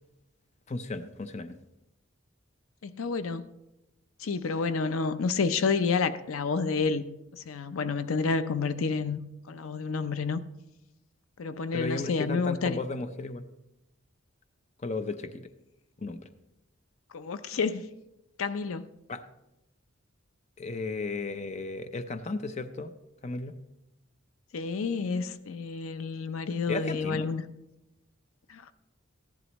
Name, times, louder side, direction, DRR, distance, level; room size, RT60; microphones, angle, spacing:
voice 1, 0.7-1.6 11.7-13.4 14.8-15.5 16.0-16.2 19.1-19.2 20.6-22.9 23.2-23.5 26.7-27.3, left 3 dB, 35° left, 10 dB, 0.5 m, -34 dB
voice 2, 2.8-3.4 4.2-7.1 7.3-9.2 9.5-10.4 11.4-12.8 17.1-17.8 18.4-18.8 24.5-27.4 28.5-28.7, left 4 dB, 90° left, 13 dB, 0.6 m, -29 dB
14.5 x 11.0 x 3.0 m, 0.93 s
head